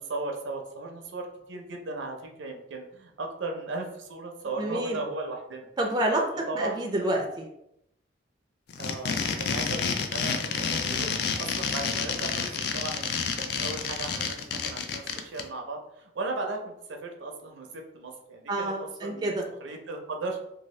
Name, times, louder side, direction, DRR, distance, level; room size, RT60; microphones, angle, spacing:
voice 1, 0.0-5.7 6.3-6.7 8.8-19.3 19.6-20.4, right 3 dB, 80° right, 3 dB, 0.5 m, -37 dB
voice 2, 4.6-5.0 5.8-7.4 18.5-19.5, right 1 dB, 20° right, 1 dB, 0.4 m, -28 dB
sound 1, 8.7-15.4, left 6 dB, 60° left, 0.3 m, -29 dB
2.7 x 2.3 x 3.1 m, 0.79 s
head